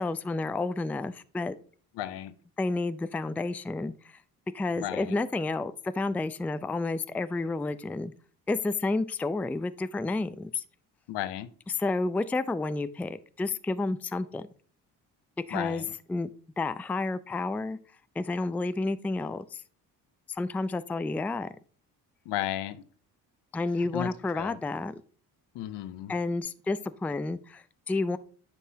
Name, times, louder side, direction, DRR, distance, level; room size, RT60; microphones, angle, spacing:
voice 1, 0.0-1.5 2.6-4.2 4.5-8.1 8.5-10.6 11.7-14.4 15.5-15.8 16.1-16.3 16.6-17.8 18.2-19.6 20.3-21.5 23.5-24.9 26.1-28.2, left 3 dB, 5° left, 14 dB, 0.4 m, -30 dB
voice 2, 2.0-2.3 4.8-5.2 11.1-11.5 15.5-15.9 22.2-22.8 23.8-24.1 24.3-24.6 25.5-26.1, left 13 dB, 70° left, 13 dB, 0.8 m, -34 dB
10.0 x 5.4 x 2.8 m, 0.44 s
hypercardioid pair, 55°, 43 cm